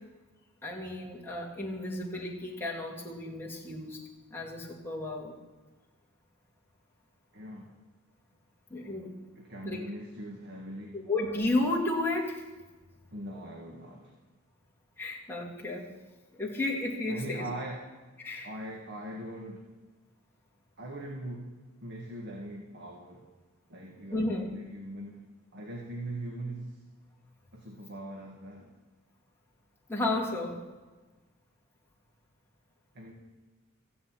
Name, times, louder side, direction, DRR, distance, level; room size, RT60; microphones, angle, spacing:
voice 1, 0.6-4.0 4.3-5.4 8.7-9.1 9.6-9.9 11.1-12.4 15.0-15.9 16.4-17.4 18.2-18.5 24.1-24.5 29.9-30.6, left 2 dB, 10° left, -3 dB, 2.8 m, -32 dB
voice 2, 7.3-7.8 9.3-11.0 13.1-14.1 17.1-18.0 18.4-19.7 20.8-23.3 23.7-25.2 25.5-26.8 27.5-28.7 32.9-33.1, right 1 dB, 55° right, 0 dB, 1.8 m, -41 dB
15.0 x 7.6 x 8.9 m, 1.2 s
head